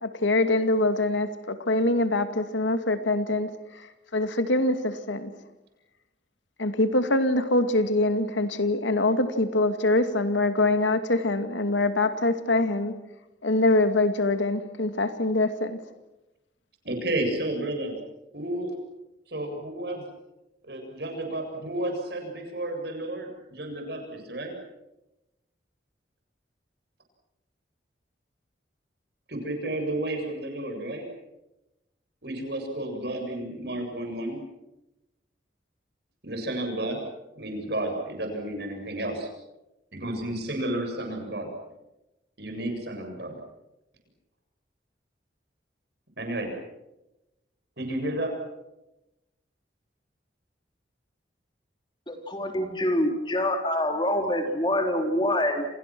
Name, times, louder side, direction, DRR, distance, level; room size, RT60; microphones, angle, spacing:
voice 1, 0.0-3.9 4.1-5.3 6.6-12.9 13.4-15.8, left 2 dB, 90° left, 9 dB, 2.3 m, -24 dB
voice 2, 16.8-17.9 18.3-18.7 19.3-20.1 20.7-24.5 29.3-31.1 32.2-34.4 36.2-37.0 37.4-39.3 39.9-41.5 42.4-43.4 46.2-46.5 47.8-48.4, right 1 dB, 60° right, 3 dB, 7.7 m, -31 dB
voice 3, 52.1-55.7, left 1 dB, 25° left, 4 dB, 3.6 m, -26 dB
29.5 x 27.5 x 6.2 m, 0.96 s
head